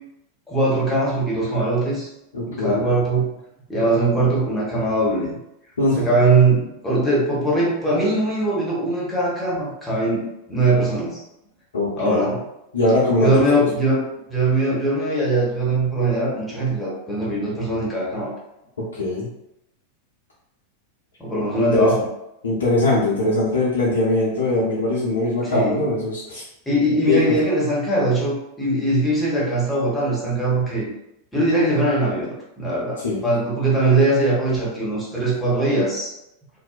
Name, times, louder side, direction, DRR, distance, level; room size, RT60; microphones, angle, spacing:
voice 1, 0.5-2.1 2.5-3.3 3.7-5.4 5.9-10.2 10.5-11.2 12.0-12.4 13.2-18.3 21.2-22.0 25.4-25.8 26.7-30.9 31.3-36.1, right 2 dB, 10° left, -6 dB, 1.0 m, -21 dB
voice 2, 2.3-2.9 5.8-6.0 11.7-12.3 12.7-13.7 19.0-19.3 21.6-21.9 22.4-26.4 27.1-27.3 33.0-33.2, left 2 dB, 70° left, -8 dB, 0.6 m, -21 dB
2.6 x 2.1 x 2.4 m, 0.85 s
figure-of-eight pair, 90°, 0 cm